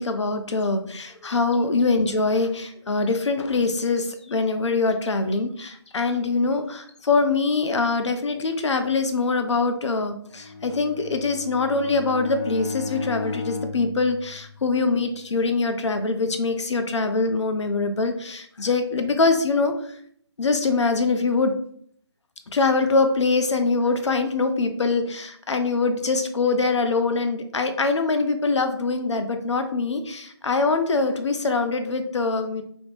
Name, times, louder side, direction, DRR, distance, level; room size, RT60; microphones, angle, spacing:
voice 1, 0.0-20.0 20.4-21.5 22.5-32.6, left 3 dB, 85° left, 8 dB, 0.5 m, -23 dB
Bowed string instrument, 10.3-14.9, left 3 dB, 15° left, 0.5 m, -35 dB
3.0 x 2.0 x 3.0 m, 0.63 s
figure-of-eight pair, 160°, 14 cm